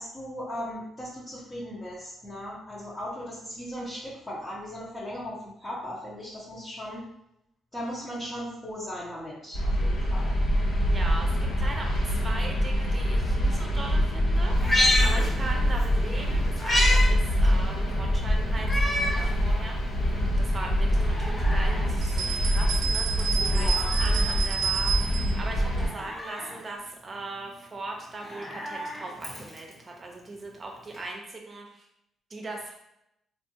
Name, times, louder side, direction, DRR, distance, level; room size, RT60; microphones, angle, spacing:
voice 1, 0.0-7.0 7.7-10.3 14.9-15.2 23.3-23.9, equal, 25° left, -9 dB, 0.9 m, -37 dB
sound 1, 9.5-25.9, equal, 75° left, 1.2 m, -25 dB
voice 2, 10.8-14.5 15.0-19.8 20.1-31.9 32.3-32.7, right 2 dB, 35° right, 1 dB, 0.8 m, -39 dB
Meow, 14.5-15.9 16.2-17.1 17.4-17.5 18.6-19.3 19.8-19.9 20.9-21.9 23.4-24.4 25.8-26.6 28.1-29.7 30.9-31.0, left 1 dB, 40° left, 1.2 m, -29 dB
sound 2, 22.0-25.3, right 6 dB, 80° right, 0.5 m, -30 dB
3.4 x 2.5 x 2.7 m, 0.81 s
cardioid pair, 90°, 0 cm